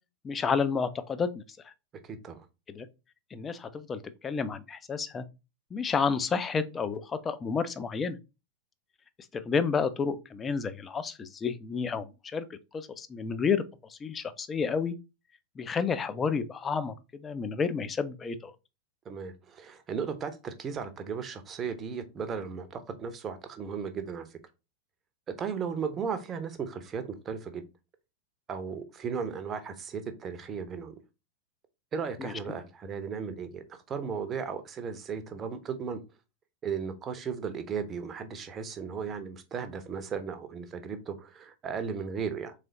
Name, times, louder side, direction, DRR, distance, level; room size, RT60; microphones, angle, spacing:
voice 1, 0.2-1.7 2.7-2.9 3.3-5.3 5.7-8.2 9.3-13.6 13.9-15.0 15.6-18.5 32.2-32.3, left 5 dB, 20° left, 0.4 m, -30 dB
voice 2, 2.0-2.5 19.1-24.4 25.3-27.6 28.5-30.9 31.9-36.0 36.6-42.5, right 6 dB, 25° right, 0.7 m, -36 dB
3.7 x 3.3 x 3.9 m
figure-of-eight pair, 90°, 0 cm